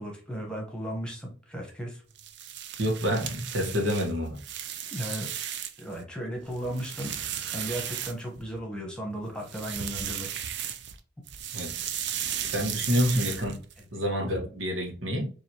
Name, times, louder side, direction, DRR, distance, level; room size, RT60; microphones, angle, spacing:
voice 1, 0.0-2.0 4.9-5.3 5.8-7.1 7.5-10.4, equal, 5° left, 0 dB, 1.1 m, -35 dB
sound 1, 2.1-5.9 6.4-8.6 9.4-11.0 11.3-13.8, right 9 dB, 65° right, 0.5 m, -35 dB
voice 2, 2.8-4.4 11.5-11.7 12.5-13.6 13.9-15.3, equal, 90° right, 1 dB, 1.3 m, -28 dB
4.9 x 2.6 x 2.9 m, 0.39 s
head